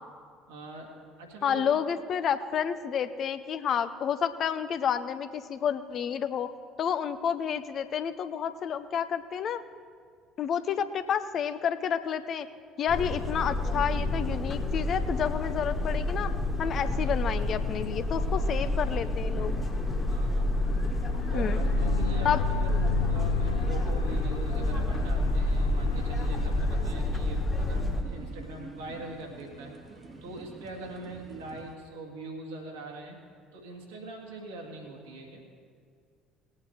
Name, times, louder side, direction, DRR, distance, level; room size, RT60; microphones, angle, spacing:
voice 1, 0.5-1.7 13.0-13.3 16.9-17.1 18.2-19.2 20.1-20.7 21.3-29.7 30.2-33.2 33.5-35.4, right 2 dB, 70° right, 1 dB, 2.0 m, -43 dB
voice 2, 1.4-6.5 6.8-9.6 10.4-12.5 12.8-16.3 16.6-19.6 21.3-21.6 22.2-22.4, left 8 dB, 45° left, 12 dB, 0.6 m, -30 dB
sound 1, 12.9-28.0, left 2 dB, 15° left, 1.7 m, -28 dB
sound 2, 13.8-31.7, right 4 dB, 30° right, 0.8 m, -46 dB
sound 3, 19.2-27.6 28.1-28.2 28.5-28.6 28.9-29.1, left 8 dB, 85° left, 0.3 m, -37 dB
19.0 x 8.7 x 4.3 m, 2.1 s
figure-of-eight pair, 60°, 0 cm